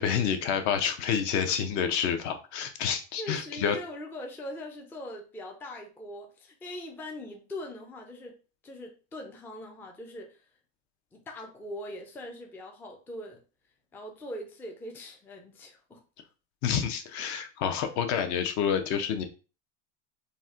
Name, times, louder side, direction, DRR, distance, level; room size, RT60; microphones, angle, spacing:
voice 1, 0.0-3.8 16.6-19.2, left 7 dB, 50° left, 0.6 m, -28 dB
voice 2, 3.2-8.4 8.6-10.5 11.1-13.4 13.9-16.0, left 1 dB, 5° left, 0.4 m, -41 dB
4.1 x 2.1 x 2.4 m
supercardioid pair, 110°, 37 cm